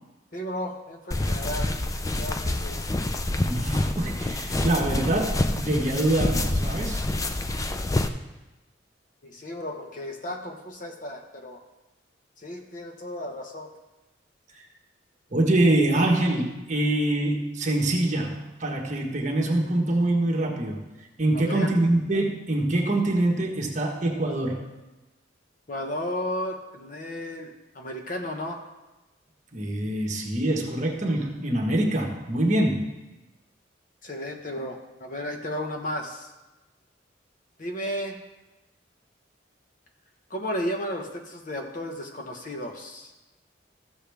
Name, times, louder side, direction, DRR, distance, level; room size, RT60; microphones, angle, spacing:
voice 1, 0.3-1.7 2.2-2.8 9.2-11.6 12.4-13.7 21.3-21.7 25.7-28.6 34.0-36.3 37.6-38.2 40.3-43.1, left 1 dB, 45° left, 3 dB, 1.1 m, -34 dB
sound 1, 1.1-8.1, left 1 dB, 15° left, 0.4 m, -27 dB
voice 2, 3.4-7.0 15.3-20.8 21.2-24.7 29.5-32.9, right 1 dB, 40° right, 0 dB, 1.3 m, -24 dB
14.0 x 7.0 x 3.5 m, 1.1 s
head